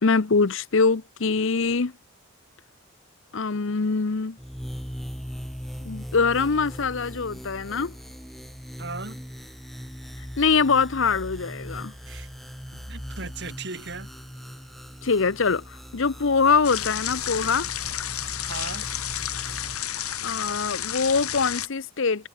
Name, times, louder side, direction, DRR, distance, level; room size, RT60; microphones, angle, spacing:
voice 1, 0.0-1.9 3.3-4.4 5.8-7.9 10.4-11.9 15.0-17.7 20.2-22.3, left 4 dB, 60° left, 0.7 m, -23 dB
sound 1, 4.4-19.8, equal, ahead, 2.1 m, -39 dB
voice 2, 8.8-9.2 12.1-12.3 12.7-14.1 18.4-18.9, right 3 dB, 50° right, 5.1 m, -37 dB
Thunder Storm And Rain (Outside Apt), 16.6-21.7, left 11 dB, 90° left, 6.1 m, -31 dB
head